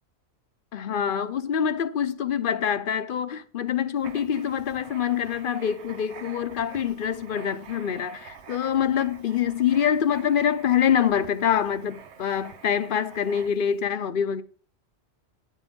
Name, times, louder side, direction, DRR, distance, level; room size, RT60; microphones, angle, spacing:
voice 1, 0.7-14.4, left 8 dB, 60° left, 0.8 m, -25 dB
Writing, 4.0-13.8, right 7 dB, 90° right, 1.1 m, -47 dB
9.9 x 7.4 x 5.2 m
omnidirectional pair, 1.1 m